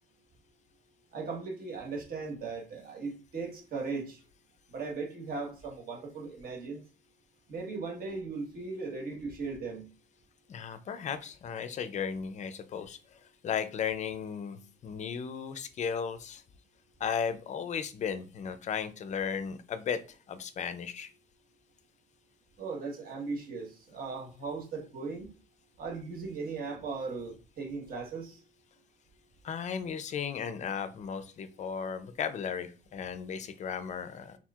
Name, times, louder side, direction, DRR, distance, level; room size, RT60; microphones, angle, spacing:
voice 1, 1.1-4.2 4.7-6.8 7.5-9.8 22.6-25.3 25.8-28.4, right 4 dB, 50° right, 1 dB, 1.3 m, -38 dB
voice 2, 10.5-13.0 13.4-16.4 17.0-20.0 20.3-21.1 29.4-34.4, left 7 dB, 35° left, 11 dB, 0.4 m, -35 dB
4.4 x 3.8 x 2.4 m, 0.36 s
cardioid pair, 150°, 20 cm